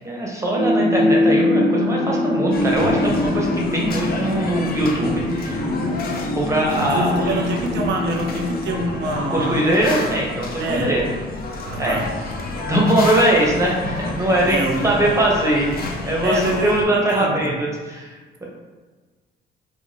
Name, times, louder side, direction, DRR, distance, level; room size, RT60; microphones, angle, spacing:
voice 1, 0.0-5.7 6.3-7.4 9.3-11.1 11.8-12.0 12.7-14.6 14.8-18.5, right 1 dB, 15° right, -3 dB, 0.7 m, -21 dB
sound 1, 0.5-9.3, left 1 dB, 85° left, 0.8 m, -23 dB
sound 2, 2.5-16.9, left 3 dB, 50° left, 0.5 m, -30 dB
voice 2, 6.9-9.7 10.6-10.9 11.6-12.1 14.4-14.9 16.2-17.5, right 2 dB, 60° right, 3 dB, 0.5 m, -26 dB
2.5 x 2.2 x 3.3 m, 1.4 s
cardioid pair, 90°, 20 cm